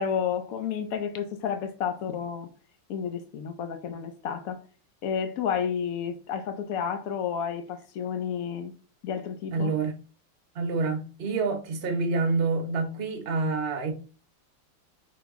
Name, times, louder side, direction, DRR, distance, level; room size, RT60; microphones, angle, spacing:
voice 1, 0.0-2.5 2.9-4.6 5.0-8.7 9.0-9.7, left 7 dB, 80° left, 0.8 m, -31 dB
voice 2, 9.5-9.9 10.5-13.9, right 3 dB, 50° right, 0.7 m, -27 dB
5.1 x 3.0 x 3.5 m
omnidirectional pair, 2.1 m